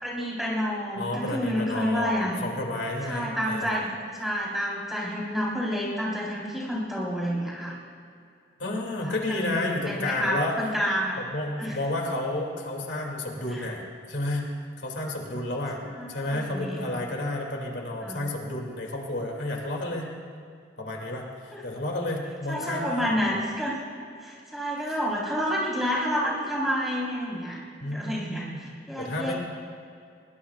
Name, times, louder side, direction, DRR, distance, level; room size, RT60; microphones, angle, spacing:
voice 1, 0.0-2.4 3.1-7.8 9.0-9.2 9.5-11.2 11.6-11.8 13.5-13.6 15.9-16.9 18.0-18.2 21.5-21.6 22.5-23.8 24.2-27.6 27.8-29.3, equal, ahead, -6 dB, 3.8 m, -29 dB
voice 2, 1.0-3.8 8.6-10.7 11.2-13.8 14.1-14.5 14.8-15.8 16.1-20.1 20.8-23.1 24.9-25.0 27.8-28.7 29.0-29.3, left 1 dB, 80° left, 0 dB, 2.4 m, -31 dB
22.5 x 21.0 x 2.4 m, 2.4 s
head